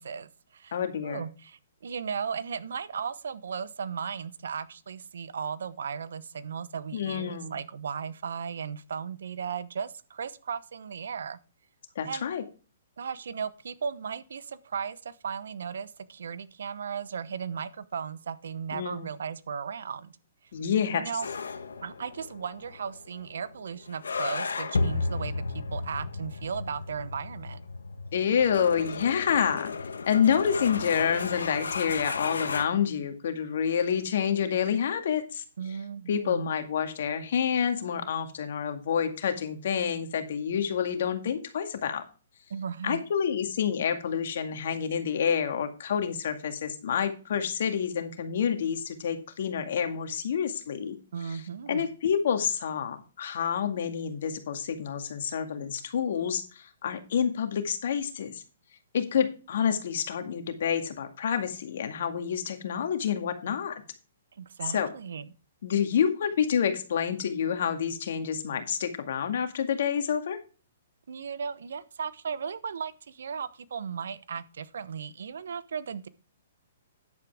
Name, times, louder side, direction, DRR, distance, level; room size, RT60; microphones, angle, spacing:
voice 1, 0.0-0.8 1.0-11.4 12.0-12.3 13.0-20.1 20.9-21.3 21.8-27.6 35.6-36.5 42.5-43.0 51.1-51.9 64.4-65.3 71.1-76.1, right 6 dB, 70° right, 16 dB, 0.9 m, -36 dB
voice 2, 0.7-1.3 6.9-7.6 12.0-12.4 18.7-19.1 20.5-21.1 28.1-29.7 30.1-35.4 36.1-42.0 42.8-51.0 51.2-51.4 51.7-58.4 58.9-63.8 64.7-64.9 65.6-70.4, left 7 dB, 65° left, 7 dB, 2.0 m, -28 dB
sound 1, 21.2-32.6, left 4 dB, 80° left, 1.3 m, -34 dB
10.5 x 8.6 x 3.5 m, 0.34 s
hypercardioid pair, 130°, 0 cm